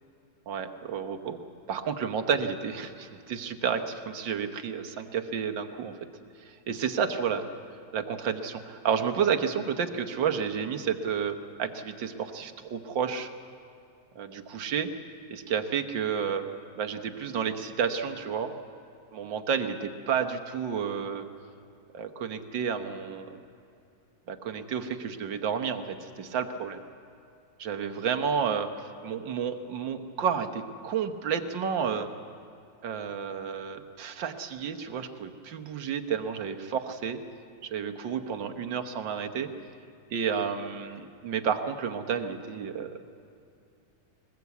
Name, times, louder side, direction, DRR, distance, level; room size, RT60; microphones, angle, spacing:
voice 1, 0.5-1.4 1.7-6.0 6.5-7.5 7.9-13.3 14.2-14.9 15.3-16.5 16.8-18.5 19.1-21.3 21.9-23.4 24.3-26.8 27.6-28.7 29.0-32.1 32.8-37.2 37.6-39.5 40.1-42.9, right 7 dB, 80° right, 6 dB, 1.9 m, -31 dB
21.5 x 20.5 x 8.3 m, 2.6 s
omnidirectional pair, 2.0 m